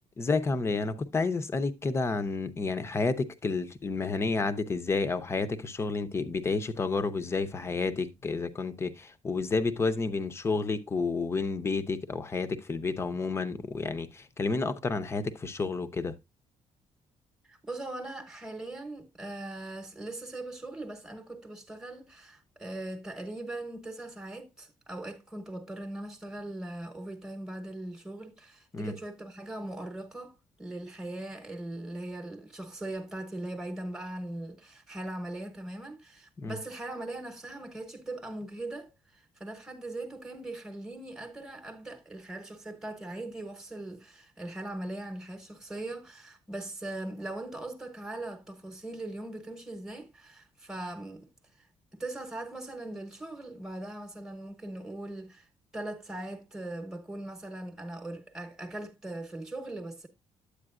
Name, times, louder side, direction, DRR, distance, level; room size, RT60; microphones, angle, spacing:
voice 1, 0.2-16.2 28.7-28.9 36.4-36.6, left 4 dB, 20° left, 0.7 m, -30 dB
voice 2, 17.4-51.3 51.6-51.7 51.9-55.5 55.7-60.1, right 1 dB, 5° right, 1.0 m, -40 dB
9.8 x 8.4 x 2.4 m
cardioid pair, 160°, 12 cm